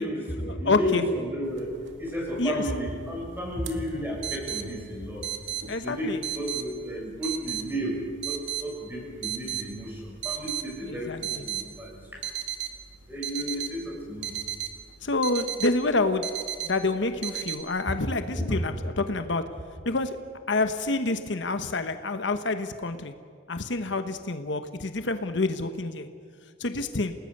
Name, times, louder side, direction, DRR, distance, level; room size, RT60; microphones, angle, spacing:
voice 1, 0.0-1.7 2.0-5.3 5.8-12.3 13.1-14.4 17.9-18.0 18.3-18.4, equal, 10° right, -2 dB, 7.2 m, -32 dB
voice 2, 0.6-1.0 2.4-2.6 5.7-6.2 10.9-11.5 15.0-16.3 16.6-19.4 19.8-20.2 20.5-23.1 23.5-26.1 26.6-27.1, left 3 dB, 65° left, 9 dB, 1.1 m, -27 dB
sound 1, 1.5-17.6, right 11 dB, 70° right, 2.1 m, -37 dB
29.0 x 19.0 x 6.7 m, 2.1 s
head